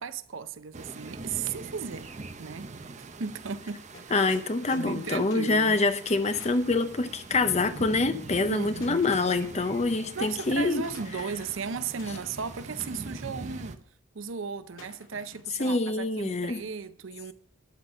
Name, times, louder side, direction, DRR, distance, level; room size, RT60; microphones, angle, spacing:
voice 1, 0.0-2.1 2.4-2.7 3.2-4.3 4.7-5.8 8.5-9.1 10.1-13.8 14.1-17.3, right 6 dB, 75° right, 0.6 m, -36 dB
sound 1, 0.7-13.8, right 3 dB, 35° right, 0.7 m, -43 dB
sound 2, 3.3-3.4 3.6-6.8 8.4-11.6 12.0-13.0 14.8-15.7, left 3 dB, 90° left, 2.1 m, -50 dB
voice 2, 4.1-10.8 15.6-16.6, left 3 dB, 35° left, 0.7 m, -26 dB
12.5 x 4.2 x 6.4 m
head